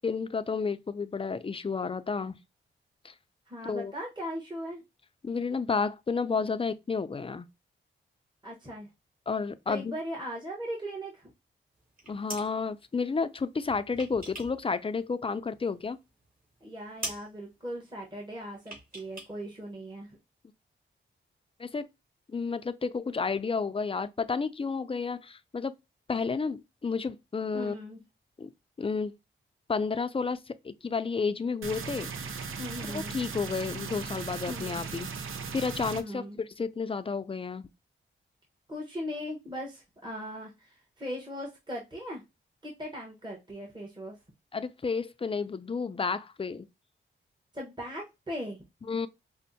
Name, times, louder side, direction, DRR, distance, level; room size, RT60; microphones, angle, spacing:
voice 1, 0.0-2.3 3.0-3.1 3.7-3.9 5.2-7.5 9.3-9.9 12.1-16.0 21.6-21.9 22.3-25.7 26.1-27.8 28.4-28.5 28.8-29.2 29.7-32.1 32.9-35.1 35.5-36.2 36.6-37.7 44.5-46.7 48.9-49.1, left 5 dB, 25° left, 0.4 m, -31 dB
voice 2, 3.5-4.8 8.4-8.9 9.7-11.3 16.6-20.2 27.5-28.0 32.6-33.2 34.5-34.9 35.9-36.4 38.7-42.2 42.6-44.2 47.5-48.6, equal, 20° right, 1.2 m, -39 dB
sound 1, 11.8-12.5 13.6-14.6 14.9-15.8 16.2-16.3 16.6-16.7 17.0-17.3 18.6-19.3 19.6-19.7, right 1 dB, 45° right, 2.5 m, -41 dB
sound 2, 31.6-36.0, right 5 dB, 80° right, 0.6 m, -37 dB
5.4 x 2.1 x 2.7 m
cardioid pair, 60°, 21 cm